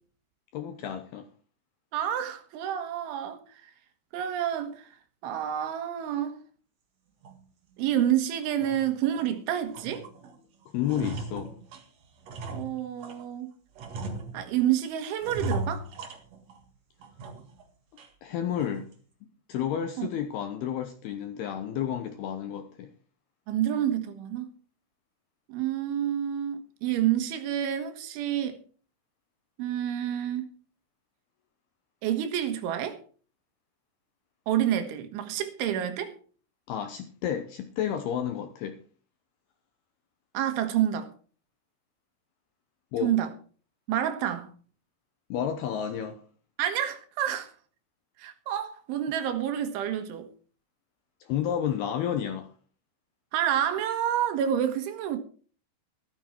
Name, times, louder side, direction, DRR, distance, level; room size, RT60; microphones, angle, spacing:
voice 1, 0.5-1.3 10.7-11.5 18.2-18.9 19.5-22.9 36.7-38.8 42.9-43.1 45.3-46.2 51.2-52.5, left 9 dB, 75° left, 2.4 m, -31 dB
voice 2, 1.9-3.4 4.1-4.9 5.2-6.4 7.8-10.1 12.5-13.5 14.3-15.9 20.0-20.1 23.5-24.5 25.5-28.6 29.6-30.5 32.0-33.0 34.5-36.1 40.3-41.1 43.0-43.3 43.9-44.5 46.6-47.5 48.2-50.3 53.3-55.2, right 10 dB, 75° right, 3.7 m, -28 dB
sound 1, 7.2-7.4 7.9-8.0 8.4-9.3 9.7-10.4 10.6-13.3 13.8-14.7 15.2-16.7 17.0-17.6 18.0-18.1 18.6-19.0, right 2 dB, 55° right, 1.9 m, -38 dB
13.5 x 13.0 x 4.4 m
omnidirectional pair, 5.7 m